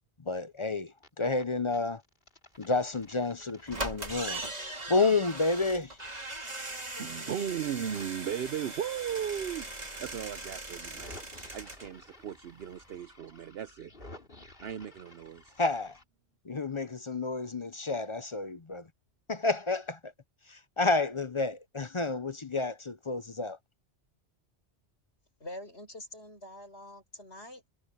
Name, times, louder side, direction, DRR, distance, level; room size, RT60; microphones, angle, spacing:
voice 1, 0.3-2.0 2.6-4.4 4.9-6.0 7.0-7.1 15.6-16.0 16.5-18.9 19.3-20.1 20.5-23.6, left 3 dB, 35° left, 0.7 m, -30 dB
sound 1, 0.8-1.4 1.7-6.8 7.1-16.0, left 1 dB, 55° left, 3.9 m, -54 dB
sound 2, 3.0-3.1 3.7-11.9 12.2-12.3 12.5-12.6, right 2 dB, 40° right, 3.0 m, -40 dB
voice 2, 7.0-9.7 10.0-11.2 11.5-13.9 14.6-15.5, right 9 dB, 70° right, 0.9 m, -36 dB
voice 3, 25.4-27.7, left 1 dB, 75° left, 7.2 m, -45 dB
omnidirectional pair, 1.1 m